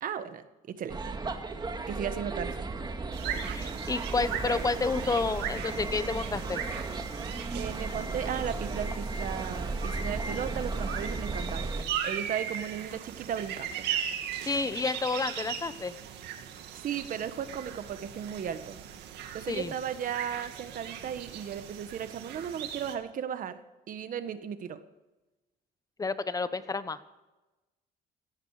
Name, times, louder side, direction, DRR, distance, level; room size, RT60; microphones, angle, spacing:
voice 1, 0.0-1.2 1.9-2.7 7.5-11.8 12.0-13.9 16.7-18.8 19.3-23.6 23.9-24.8, right 8 dB, 55° right, 11 dB, 1.5 m, -36 dB
sound 1, 0.9-11.8, right 3 dB, 25° right, 1.9 m, -35 dB
sound 2, 3.1-22.9, right 9 dB, 80° right, 2.2 m, -39 dB
voice 2, 3.3-6.6 14.4-15.9 19.5-19.7 26.0-27.0, left 4 dB, 20° left, 13 dB, 1.1 m, -30 dB
17.0 x 14.0 x 5.0 m, 1.1 s
cardioid pair, 110°, 17 cm